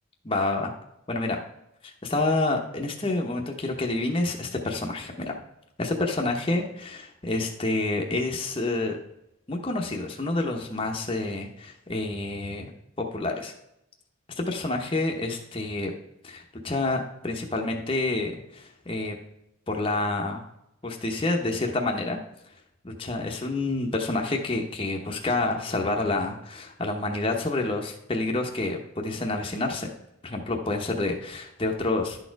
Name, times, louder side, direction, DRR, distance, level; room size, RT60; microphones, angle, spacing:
voice 1, 0.2-0.7 1.1-1.4 1.8-5.3 5.8-9.0 9.5-12.7 13.0-13.5 14.4-15.9 16.2-19.2 19.7-20.4 20.8-22.2 22.8-29.9 30.2-32.2, left 2 dB, 25° left, 1 dB, 0.9 m, -28 dB
11.0 x 4.4 x 4.6 m, 0.82 s
head